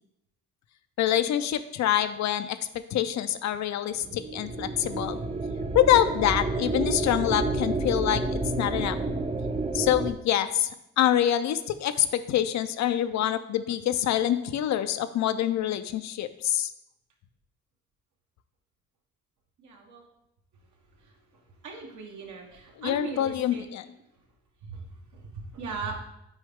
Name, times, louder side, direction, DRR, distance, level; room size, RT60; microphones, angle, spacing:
voice 1, 1.0-5.2 5.7-9.0 9.7-10.7 11.0-16.7 22.8-23.9, left 11 dB, 65° left, 12 dB, 0.5 m, -26 dB
sound 1, 4.0-10.1, right 2 dB, 20° right, 0.5 m, -30 dB
voice 2, 21.6-22.4 22.8-23.6 25.6-26.0, right 4 dB, 75° right, 1 dB, 1.3 m, -36 dB
6.2 x 4.6 x 3.5 m, 0.83 s
cardioid pair, 90°, 30 cm